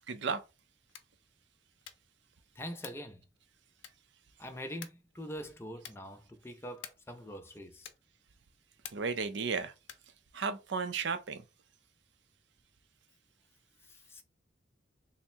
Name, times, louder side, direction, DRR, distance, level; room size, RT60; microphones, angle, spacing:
voice 1, 0.1-0.4 8.9-9.7 10.3-11.4, right 5 dB, 65° right, 0.5 m, -34 dB
sound 1, 0.8-1.2 1.8-2.2 2.8-3.1 3.8-4.2 4.8-5.1 5.8-6.1 6.8-7.2 7.8-8.2 8.8-9.2 9.8-10.2, left 9 dB, 85° left, 0.6 m, -50 dB
voice 2, 2.6-3.2 4.4-7.9 13.8-14.2, equal, 15° left, 0.5 m, -44 dB
3.5 x 2.0 x 4.3 m
head